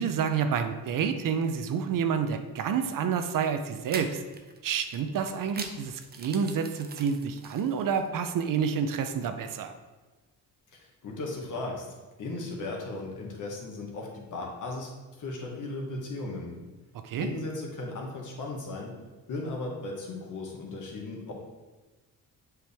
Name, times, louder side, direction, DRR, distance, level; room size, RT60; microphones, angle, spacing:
voice 1, 0.0-4.2 4.6-9.7 17.0-17.3, right 6 dB, 65° right, 7 dB, 0.7 m, -29 dB
sound 1, 2.7-2.9 3.9-8.2, right 4 dB, 25° right, 0.7 m, -43 dB
voice 2, 10.7-11.9 12.2-14.9 15.2-16.5 17.2-18.9 19.3-21.3, left 2 dB, 60° left, -1 dB, 1.8 m, -36 dB
7.6 x 4.9 x 3.5 m, 1.2 s
cardioid pair, 105°, 35 cm